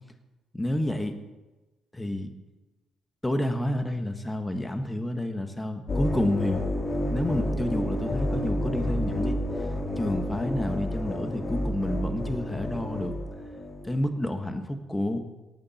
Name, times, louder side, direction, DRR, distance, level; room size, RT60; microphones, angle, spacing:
voice 1, 0.5-1.1 1.9-2.3 3.2-6.6 7.0-9.4 10.0-13.1 13.8-15.2, left 1 dB, 10° left, 7 dB, 1.5 m, -29 dB
sound 1, 5.9-14.0, left 1 dB, 40° left, 2.4 m, -30 dB
18.0 x 8.9 x 4.4 m, 1.1 s
cardioid pair, 90°, 0 cm